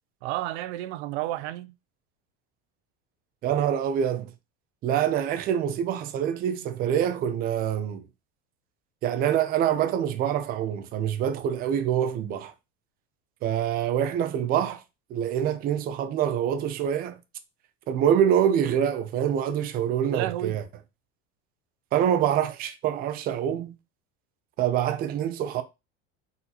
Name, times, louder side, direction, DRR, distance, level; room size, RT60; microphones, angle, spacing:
voice 1, 0.2-1.7 20.1-20.6, right 14 dB, 85° right, 0.5 m, -31 dB
voice 2, 3.4-4.3 4.8-8.1 9.0-12.5 13.4-14.8 15.1-17.2 17.9-20.6 21.9-23.7 24.6-25.6, right 9 dB, 30° right, 0.5 m, -25 dB
4.1 x 3.9 x 2.9 m
cardioid pair, 165°, 32 cm